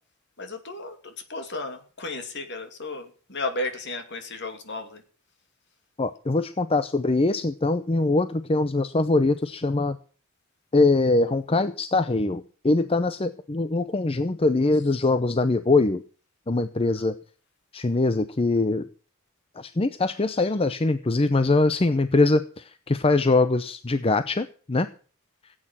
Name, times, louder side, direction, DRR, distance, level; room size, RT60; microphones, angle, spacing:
voice 1, 0.4-5.0 17.0-17.1, left 2 dB, 55° left, 7 dB, 2.7 m, -34 dB
voice 2, 6.0-10.0 10.7-16.0 16.5-17.2 17.7-18.9 19.6-24.9, left 2 dB, 25° left, 12 dB, 0.6 m, -23 dB
16.5 x 8.9 x 7.5 m, 0.40 s
head